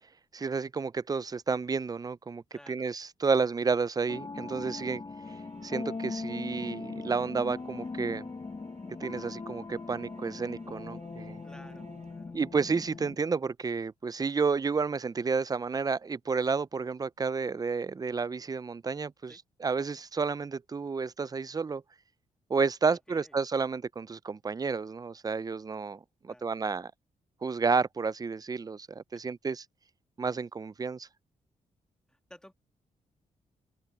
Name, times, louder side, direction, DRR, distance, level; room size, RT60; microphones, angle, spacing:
voice 1, 0.3-5.0 5.6-8.3 9.0-11.4 12.3-21.8 22.5-26.9 27.4-29.6 30.2-31.1, right 5 dB, 25° right, 0.5 m, -31 dB
voice 2, 2.5-2.9 3.4-3.5 11.4-12.4 19.3-19.4 22.9-23.4 26.3-26.5 32.1-32.5, left 1 dB, 5° left, 2.1 m, -55 dB
sound 1, 4.1-13.2, left 4 dB, 30° left, 1.0 m, -40 dB
sound 2, 5.2-13.0, right 7 dB, 60° right, 5.2 m, -58 dB
cardioid pair, 65°, 14 cm